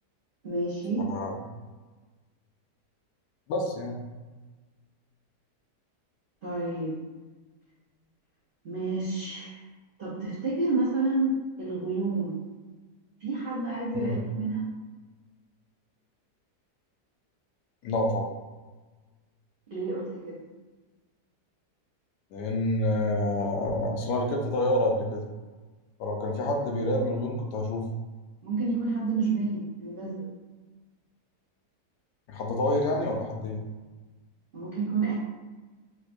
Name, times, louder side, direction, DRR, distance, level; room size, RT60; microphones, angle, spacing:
voice 1, 0.4-1.1 6.4-7.0 8.6-9.6 10.0-12.4 13.2-14.7 19.7-20.4 28.4-30.2 34.5-35.2, right 3 dB, 50° right, -8 dB, 0.6 m, -29 dB
voice 2, 3.5-4.0 13.9-14.2 17.8-18.3 22.3-25.2 26.0-27.9 32.3-33.6, left 1 dB, 90° left, 0 dB, 1.2 m, -28 dB
4.4 x 2.2 x 2.5 m, 1.3 s
omnidirectional pair, 1.8 m